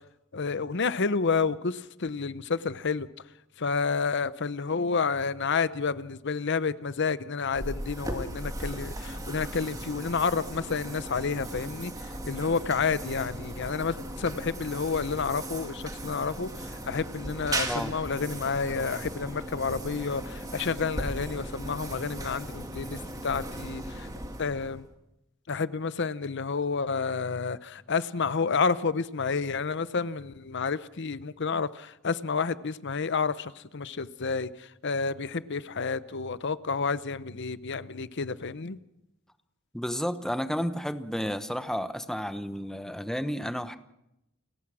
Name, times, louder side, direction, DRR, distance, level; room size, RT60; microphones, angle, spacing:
voice 1, 0.3-3.1 3.6-24.1 24.4-24.9 25.5-38.8, left 5 dB, 60° left, 0.8 m, -30 dB
sound 1, 7.5-24.9, right 1 dB, 15° right, 2.1 m, -37 dB
voice 2, 39.7-43.8, equal, 5° left, 1.0 m, -32 dB
29.5 x 15.0 x 6.2 m
head